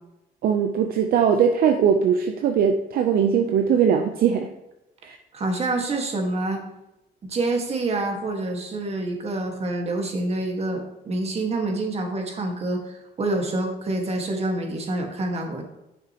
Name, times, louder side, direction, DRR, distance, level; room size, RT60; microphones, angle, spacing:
voice 1, 0.4-4.5 5.0-5.2, right 7 dB, 60° right, 5 dB, 0.7 m, -20 dB
voice 2, 5.3-6.6 7.2-15.6, right 2 dB, 40° right, 2 dB, 1.8 m, -27 dB
9.7 x 6.6 x 3.0 m, 0.92 s
cardioid pair, 110°, 17 cm